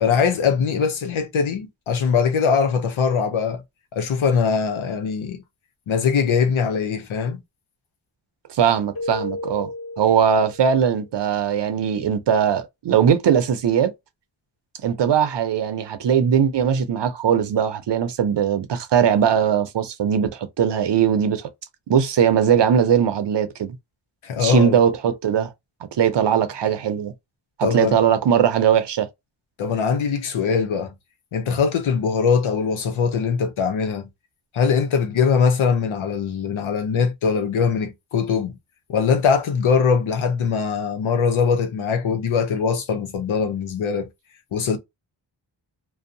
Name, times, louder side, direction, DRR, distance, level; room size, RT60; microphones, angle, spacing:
voice 1, 0.0-3.6 3.9-5.4 5.9-7.4 24.2-24.8 27.6-28.0 29.6-30.9 31.3-34.1 34.5-38.6 38.9-44.1 44.5-44.8, left 6 dB, 90° left, 0.8 m, -21 dB
voice 2, 8.5-9.7 10.0-13.9 14.8-21.5 21.9-23.8 24.4-25.5 25.9-27.1 27.6-29.1, right 8 dB, 65° right, 0.6 m, -20 dB
Keyboard (musical), 9.0-11.0, left 2 dB, 50° left, 0.7 m, -33 dB
2.6 x 2.2 x 2.6 m
wide cardioid pair, 115°, 46 cm